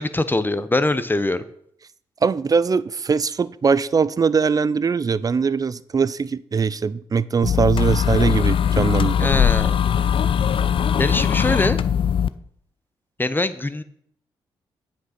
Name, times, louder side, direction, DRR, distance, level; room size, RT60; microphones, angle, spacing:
voice 1, 0.0-1.4 9.2-9.8 11.0-11.8 13.2-13.8, left 2 dB, 20° left, 0.7 m, -22 dB
voice 2, 2.2-9.6, right 5 dB, 35° right, 0.4 m, -21 dB
sound 1, 7.4-12.3, left 8 dB, 55° left, 0.5 m, -20 dB
8.0 x 5.3 x 5.8 m
supercardioid pair, 50°, 11 cm